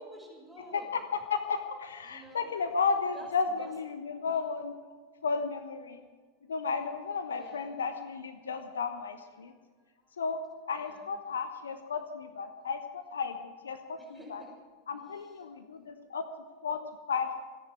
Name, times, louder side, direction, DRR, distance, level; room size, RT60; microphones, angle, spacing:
voice 1, 0.0-0.9 2.0-2.5 3.1-3.7 5.9-6.0 7.3-7.8 10.0-10.1 10.7-11.1 14.0-14.5 14.9-15.6, right 1 dB, ahead, -2 dB, 5.8 m, -51 dB
voice 2, 0.7-4.7 5.2-6.0 6.5-9.5 10.2-10.4 10.7-14.0 14.3-14.4 14.9-16.3 16.6-16.8 17.1-17.4, left 5 dB, 65° left, 9 dB, 1.1 m, -33 dB
28.0 x 10.5 x 4.7 m, 1.5 s
figure-of-eight pair, 90°, 0 cm